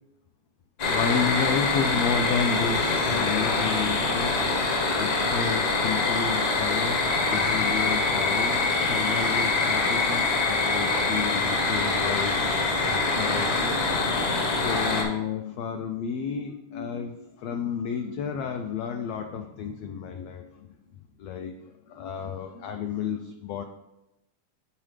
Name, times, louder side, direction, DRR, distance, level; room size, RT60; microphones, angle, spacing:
sound 1, 0.8-15.0, left 3 dB, 65° left, 1.2 m, -24 dB
voice 1, 0.9-4.4 5.0-7.0 7.3-12.6 12.9-13.8 14.6-20.7 21.2-23.6, left 6 dB, 85° left, 5 dB, 1.4 m, -31 dB
9.5 x 4.1 x 3.2 m, 0.93 s
omnidirectional pair, 3.4 m